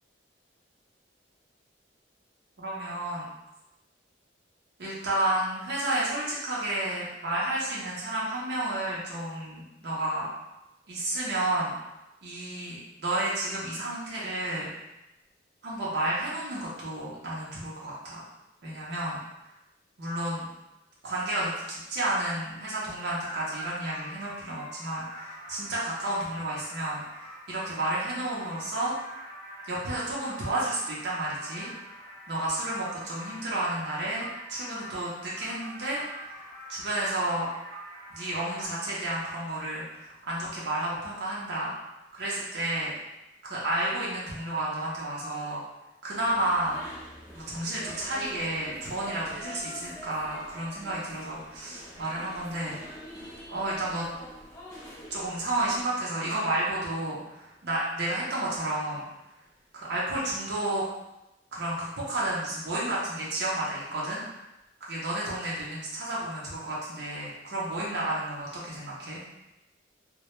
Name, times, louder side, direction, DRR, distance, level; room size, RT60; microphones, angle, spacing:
voice 1, 2.6-3.3 4.8-10.3 10.9-11.7 12.2-14.7 15.6-18.2 18.6-19.2 20.0-20.5 21.0-29.0 29.6-31.7 32.3-36.0 36.7-37.5 38.1-41.7 42.1-42.9 43.4-45.6 46.0-46.8 47.3-52.8 53.5-54.1 55.1-59.1 59.7-60.8 61.5-64.2 64.9-69.2, right 1 dB, 60° right, -6 dB, 0.5 m, -31 dB
sound 1, 23.1-38.7, equal, 55° left, 0.8 m, -45 dB
sound 2, 46.2-55.8, equal, 15° left, 0.5 m, -45 dB
2.1 x 2.0 x 2.9 m, 0.95 s
head